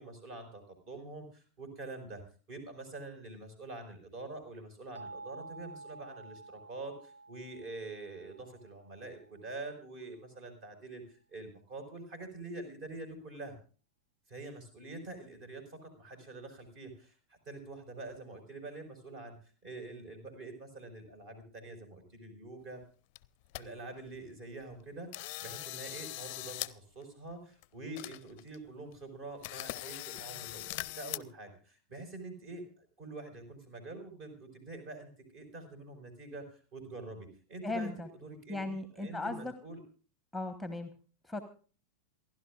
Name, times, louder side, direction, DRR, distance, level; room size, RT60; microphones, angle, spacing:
voice 1, 0.0-2.2 2.5-11.0 11.3-13.6 14.3-19.4 19.6-22.8 23.5-39.8, right 2 dB, 40° right, 7 dB, 5.0 m, -46 dB
sound 1, 4.9-9.7, right 3 dB, 70° right, 1.2 m, -51 dB
sound 2, 22.8-22.9 23.2-23.6 24.1-24.2 24.6-24.8 25.1-26.7 27.0-27.1 27.6-27.7 28.0-28.6 28.9-29.0 29.4-31.2, left 17 dB, 45° left, 0.5 m, -41 dB
voice 2, 37.6-38.1 38.5-39.5 40.3-40.9 41.2-41.4, left 2 dB, ahead, 9 dB, 1.3 m, -37 dB
28.0 x 11.5 x 2.5 m, 0.39 s
figure-of-eight pair, 90°, 0 cm